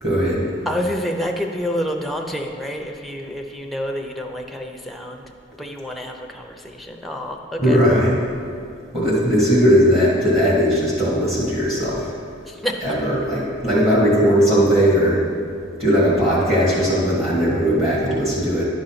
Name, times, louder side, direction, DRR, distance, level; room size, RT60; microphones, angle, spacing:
voice 1, 0.0-0.5 7.6-8.1 8.9-12.0 12.8-15.2 15.8-18.7, equal, 35° right, -7 dB, 1.8 m, -18 dB
voice 2, 0.7-5.2 5.6-7.8 12.5-12.8, equal, ahead, 2 dB, 0.5 m, -28 dB
10.5 x 3.9 x 5.7 m, 2.3 s
head